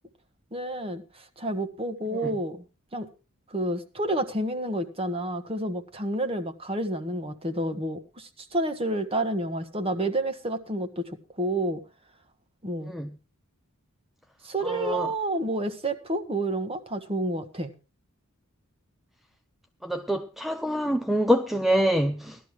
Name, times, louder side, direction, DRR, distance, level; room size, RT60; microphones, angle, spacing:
voice 1, 0.5-2.6 2.9-3.1 3.5-11.8 12.6-12.9 14.4-17.7, right 1 dB, 25° right, 1.4 m, -29 dB
voice 2, 14.6-15.1 19.8-22.4, equal, ahead, 0.5 m, -25 dB
17.0 x 12.5 x 3.2 m
head